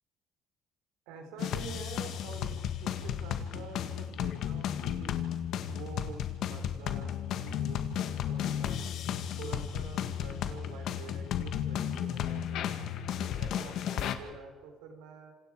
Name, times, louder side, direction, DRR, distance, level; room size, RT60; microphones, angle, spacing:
voice 1, 1.1-5.2 5.6-8.9 9.3-12.7 13.2-15.3, right 5 dB, 90° right, 5 dB, 3.6 m, -47 dB
sound 1, 1.4-14.1, left 9 dB, 70° left, 1.8 m, -34 dB
27.5 x 27.0 x 4.9 m, 1.4 s
supercardioid pair, 85°, 0 cm